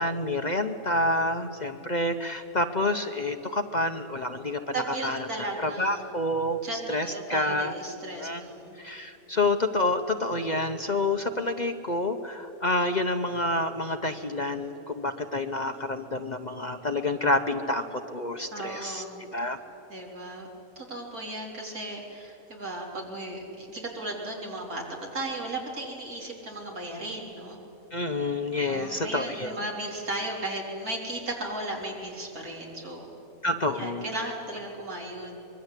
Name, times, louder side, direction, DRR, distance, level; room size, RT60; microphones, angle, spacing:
voice 1, 0.0-7.7 8.1-8.4 8.8-19.0 19.3-19.6 27.9-29.6 33.4-34.0, left 2 dB, 35° left, 7 dB, 0.8 m, -28 dB
voice 2, 4.7-6.1 6.6-8.8 18.5-19.2 19.9-20.5 20.8-27.6 28.7-33.1 33.7-35.4, right 2 dB, 80° right, -1 dB, 4.2 m, -35 dB
25.0 x 22.0 x 8.2 m, 3.0 s
omnidirectional pair, 1.5 m